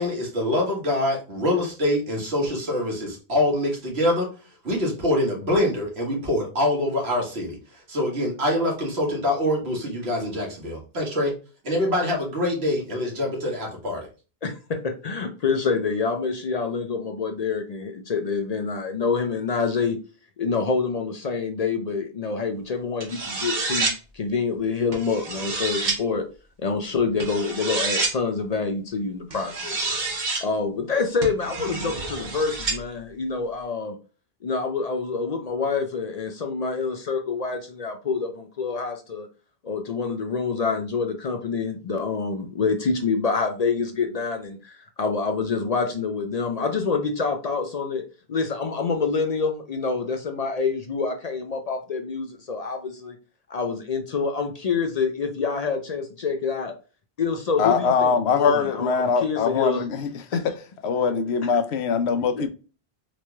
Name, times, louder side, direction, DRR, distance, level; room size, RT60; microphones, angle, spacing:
voice 1, 0.0-4.3 4.6-7.6 7.9-11.3 11.6-14.1, left 1 dB, 85° right, 1.6 m, -25 dB
voice 2, 14.4-20.0 20.4-26.3 26.6-29.9 30.4-34.0 34.4-39.3 39.6-48.0 48.3-53.2 53.5-56.7 57.2-59.8 60.3-60.4, left 4 dB, 50° left, 0.5 m, -27 dB
sound 1, 23.0-24.0 24.9-26.0 27.2-28.2 29.3-30.4 31.2-32.8, right 3 dB, 50° right, 0.9 m, -28 dB
voice 3, 57.6-60.6 60.8-62.5, left 5 dB, 90° left, 0.9 m, -22 dB
4.0 x 3.0 x 2.2 m
omnidirectional pair, 1.1 m